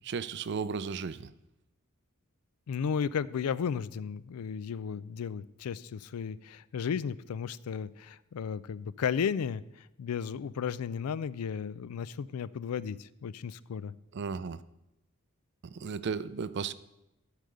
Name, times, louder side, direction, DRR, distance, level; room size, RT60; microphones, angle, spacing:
voice 1, 0.0-1.3 14.1-14.6 15.6-16.7, right 5 dB, 50° right, 16 dB, 0.4 m, -35 dB
voice 2, 2.7-9.6 10.0-13.9, left 7 dB, 90° left, 18 dB, 0.4 m, -34 dB
11.5 x 5.0 x 6.7 m, 0.92 s
head